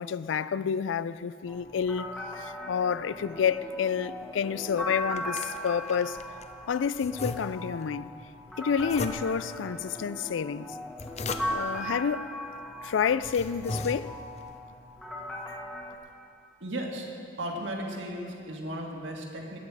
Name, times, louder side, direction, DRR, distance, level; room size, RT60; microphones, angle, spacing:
voice 1, 0.0-2.1 2.4-6.2 6.7-8.1 8.6-10.8 11.4-12.3 12.8-14.1, left 7 dB, 80° left, 0.4 m, -29 dB
sound 1, 1.5-16.0, equal, 5° left, 1.5 m, -38 dB
sound 2, 4.8-6.5 7.0-7.9 8.8-9.6 10.7-11.8 12.6-12.7 13.1-14.4, left 2 dB, 35° left, 0.5 m, -38 dB
voice 2, 16.6-17.1 17.4-19.6, right 1 dB, 75° right, 1.8 m, -35 dB
20.0 x 8.6 x 4.8 m
head